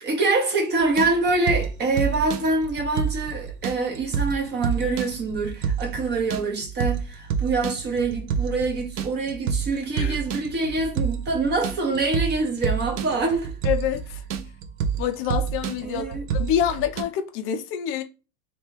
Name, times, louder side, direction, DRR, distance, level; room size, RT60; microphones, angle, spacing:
voice 1, 0.0-13.5 15.8-16.2, right 3 dB, 25° right, 1.0 m, -25 dB
sound 1, 0.8-17.0, right 7 dB, 60° right, 0.8 m, -29 dB
voice 2, 13.6-14.2 15.0-18.0, left 9 dB, 30° left, 0.6 m, -27 dB
3.2 x 3.0 x 4.6 m
supercardioid pair, 140°, 44 cm